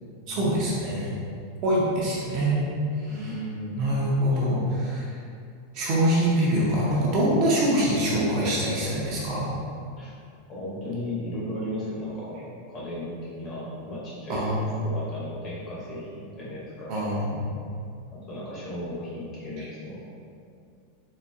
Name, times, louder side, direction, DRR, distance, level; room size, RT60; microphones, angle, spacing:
voice 1, 0.3-1.1 1.6-2.6 3.0-3.4 3.8-5.0 5.7-9.5 14.3-14.7 16.9-17.4, right 1 dB, 35° right, -5 dB, 0.6 m, -24 dB
voice 2, 3.1-3.8 10.0-10.1 10.5-14.5 14.8-17.1 18.1-20.1, left 1 dB, 20° left, -7 dB, 0.7 m, -35 dB
3.9 x 2.7 x 2.5 m, 2.4 s
supercardioid pair, 180°, 0 cm